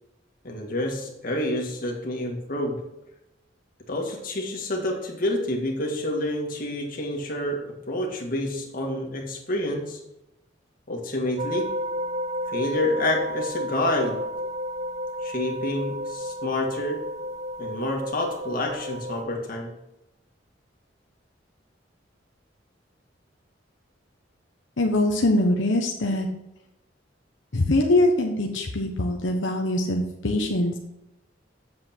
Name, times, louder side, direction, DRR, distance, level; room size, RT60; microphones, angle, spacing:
voice 1, 0.4-2.8 3.9-10.0 10.9-11.8 12.5-14.2 15.2-17.0 17.6-19.7, left 1 dB, 50° left, 0 dB, 2.0 m, -28 dB
sound 1, 11.4-19.3, equal, 40° right, 0.4 m, -32 dB
voice 2, 24.8-26.3 27.5-30.8, left 1 dB, 90° left, 1 dB, 1.1 m, -23 dB
8.0 x 7.7 x 4.5 m, 0.90 s
head